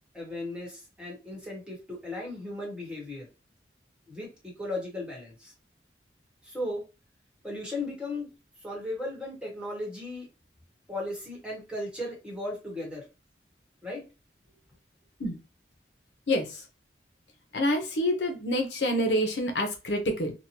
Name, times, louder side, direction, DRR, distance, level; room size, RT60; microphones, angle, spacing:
voice 1, 0.1-3.3 4.1-5.5 6.4-6.8 7.4-8.3 8.6-10.3 10.9-13.0 13.8-14.0, left 1 dB, 5° right, -2 dB, 1.1 m, -36 dB
voice 2, 16.3-16.6 17.5-20.3, left 1 dB, 75° left, 4 dB, 0.6 m, -27 dB
2.8 x 2.1 x 2.8 m, 0.29 s
head